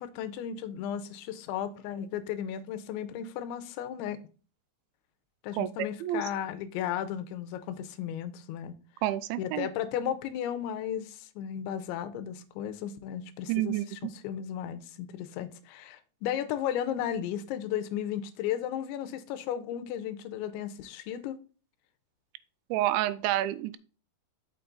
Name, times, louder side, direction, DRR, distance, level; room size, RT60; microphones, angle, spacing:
voice 1, 0.0-4.2 5.4-8.8 9.4-21.4, left 10 dB, 90° left, 3.0 m, -35 dB
voice 2, 5.6-6.3 9.0-9.7 13.5-13.9 22.7-23.8, right 14 dB, 85° right, 2.9 m, -29 dB
6.6 x 5.8 x 3.8 m
omnidirectional pair, 5.2 m